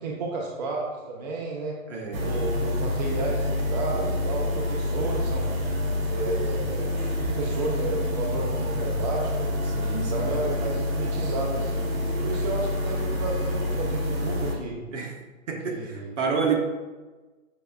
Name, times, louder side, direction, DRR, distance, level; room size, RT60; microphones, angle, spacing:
voice 1, 0.0-1.8 2.2-5.5 6.1-6.9 7.2-9.6 10.0-11.9 12.2-14.8 15.6-16.1, right 2 dB, 35° right, -1 dB, 0.5 m, -32 dB
voice 2, 1.9-2.3 9.7-10.3 14.9-15.1 15.5-16.5, right 5 dB, 65° right, 1 dB, 1.1 m, -29 dB
sound 1, 2.1-14.6, left 1 dB, 85° right, 1.0 m, -27 dB
6.4 x 3.2 x 2.3 m, 1.2 s
hypercardioid pair, 140°, 39 cm